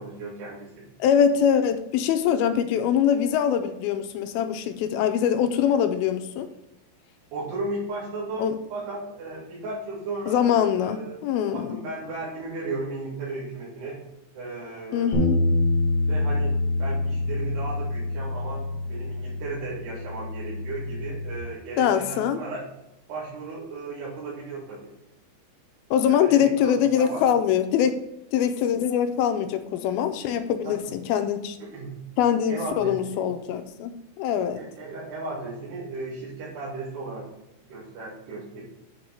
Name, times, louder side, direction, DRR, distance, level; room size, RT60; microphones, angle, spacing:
voice 1, 0.0-0.9 7.3-11.2 11.5-14.0 14.3-15.2 16.0-22.6 23.1-24.8 26.0-27.2 30.6-30.7 31.7-32.0 32.5-33.2 34.5-37.3 37.6-38.6, right 3 dB, 85° right, -9 dB, 4.6 m, -35 dB
voice 2, 1.0-6.5 8.4-8.6 10.3-11.8 14.9-15.4 21.8-22.4 25.9-28.0 28.3-31.6 32.2-34.6, left 8 dB, 80° left, 8 dB, 2.4 m, -23 dB
sound 1, 15.1-21.4, left 2 dB, 45° left, 1.6 m, -26 dB
8.8 x 4.7 x 5.4 m, 0.88 s
omnidirectional pair, 4.6 m